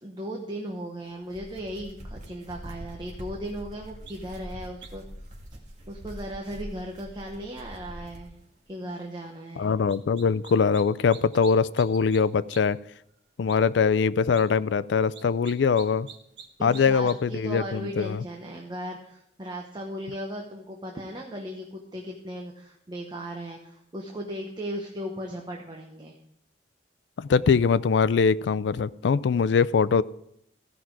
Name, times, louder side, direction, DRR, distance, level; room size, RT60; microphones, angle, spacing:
voice 1, 0.0-5.3 5.9-8.4 8.7-9.7 16.6-26.2, equal, 25° right, 1 dB, 1.1 m, -37 dB
sound 1, 1.1-8.3, equal, 45° right, 2.0 m, -43 dB
sound 2, 4.1-4.2 4.8-5.1 9.9-10.8 11.1-12.2 12.5-12.6 13.0-13.1 13.5-13.6 14.2-14.4 15.1-16.5 16.7-17.1, right 7 dB, 70° right, 1.5 m, -45 dB
voice 2, 9.6-12.8 13.4-16.1 16.6-18.2 27.2-30.0, left 5 dB, 85° left, 18 dB, 0.4 m, -22 dB
15.0 x 5.9 x 4.7 m, 0.75 s
head